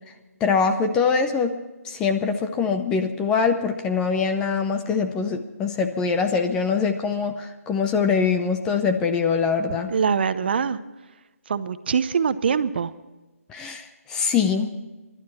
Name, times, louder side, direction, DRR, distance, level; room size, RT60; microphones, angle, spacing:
voice 1, 0.4-1.5 1.8-9.9 13.5-14.7, left 5 dB, 10° left, 7 dB, 0.6 m, -23 dB
voice 2, 9.9-10.8 11.5-12.9, right 6 dB, 40° right, 13 dB, 0.7 m, -23 dB
24.5 x 11.5 x 4.3 m, 1.2 s
figure-of-eight pair, 160°, 8 cm